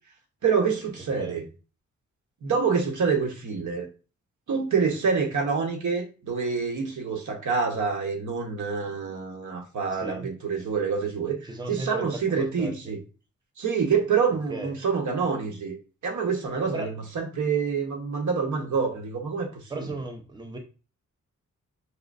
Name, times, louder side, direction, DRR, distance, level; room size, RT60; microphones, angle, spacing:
voice 1, 0.4-1.4 2.4-3.9 4.5-11.4 11.7-13.0 13.6-15.8 16.0-19.9, right 5 dB, 80° right, 3 dB, 1.0 m, -27 dB
voice 2, 9.9-10.3 11.4-12.7 14.5-14.7 16.7-16.9 19.7-20.6, right 2 dB, 15° right, 3 dB, 0.6 m, -36 dB
4.8 x 3.1 x 2.5 m, 0.34 s
wide cardioid pair, 125°, 30 cm